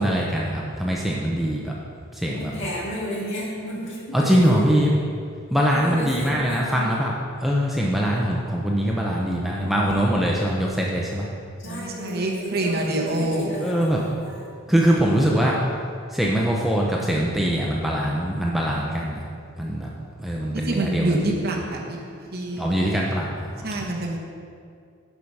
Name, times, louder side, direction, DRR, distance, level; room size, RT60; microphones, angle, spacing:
voice 1, 0.0-1.7 2.2-2.5 4.1-4.9 5.5-7.1 7.4-11.3 13.6-14.0 14.7-15.5 16.1-19.2 19.6-19.9 20.2-21.3 22.6-23.3, equal, ahead, -3 dB, 0.6 m, -22 dB
voice 2, 2.3-4.8 5.7-6.9 11.6-14.5, equal, 60° left, -4 dB, 2.3 m, -33 dB
voice 3, 11.6-13.5 20.7-21.8 22.3-22.9 23.6-24.2, right 1 dB, 50° right, 0 dB, 1.1 m, -26 dB
10.5 x 5.0 x 5.4 m, 2.3 s
head